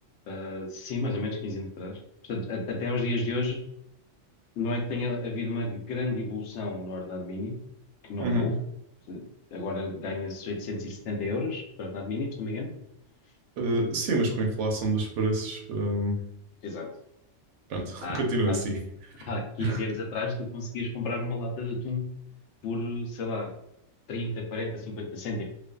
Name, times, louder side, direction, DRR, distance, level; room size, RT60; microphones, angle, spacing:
voice 1, 0.3-2.0 2.3-3.6 4.6-7.6 8.0-8.6 9.1-9.2 9.5-12.7 16.6-16.9 18.0-18.6 19.2-22.1 22.6-23.5 24.1-25.4, left 2 dB, 70° left, 1 dB, 0.9 m, -32 dB
voice 2, 13.6-16.2 17.7-18.8 19.2-19.3 19.6-19.8, right 1 dB, 75° right, 1 dB, 0.9 m, -27 dB
2.5 x 2.4 x 2.2 m, 0.79 s
omnidirectional pair, 1.3 m